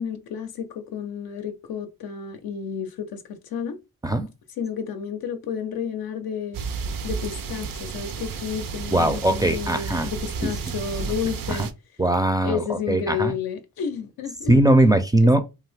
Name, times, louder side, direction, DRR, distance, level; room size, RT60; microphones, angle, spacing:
voice 1, 0.0-3.8 4.6-6.6 7.0-11.7 12.4-14.5 15.2-15.4, left 7 dB, 80° left, 0.5 m, -31 dB
sound 1, 6.5-11.7, right 5 dB, 65° right, 0.5 m, -32 dB
voice 2, 8.9-10.1 10.4-10.5 11.5-11.7 12.0-13.3 14.5-15.4, right 1 dB, 10° right, 0.4 m, -20 dB
2.6 x 2.4 x 3.2 m
cardioid pair, 75°, 36 cm